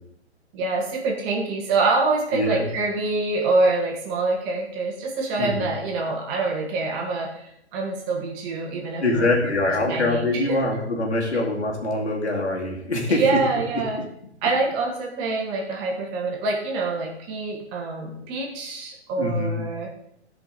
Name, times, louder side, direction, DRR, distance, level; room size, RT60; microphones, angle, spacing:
voice 1, 0.5-9.5 9.9-10.6 13.1-14.0 14.4-20.1, right 3 dB, 25° right, 0 dB, 1.8 m, -26 dB
voice 2, 2.3-2.7 5.4-5.7 9.0-13.4 19.2-19.6, left 2 dB, 70° left, -1 dB, 2.6 m, -24 dB
15.0 x 5.2 x 4.0 m, 0.72 s
figure-of-eight pair, 125°, 34 cm